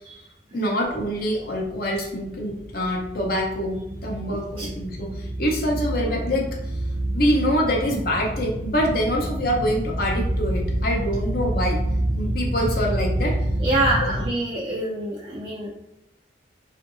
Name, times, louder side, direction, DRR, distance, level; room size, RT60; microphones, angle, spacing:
voice 1, 0.5-3.8 4.0-5.1 5.4-6.5 7.1-11.8 12.1-13.3 14.0-14.1, equal, 55° left, 0 dB, 0.6 m, -25 dB
sound 1, 0.9-14.3, right 1 dB, 80° right, 0.6 m, -28 dB
voice 2, 4.3-4.7 13.6-15.7, right 2 dB, 30° right, -6 dB, 0.4 m, -26 dB
2.7 x 2.5 x 2.5 m, 0.87 s
head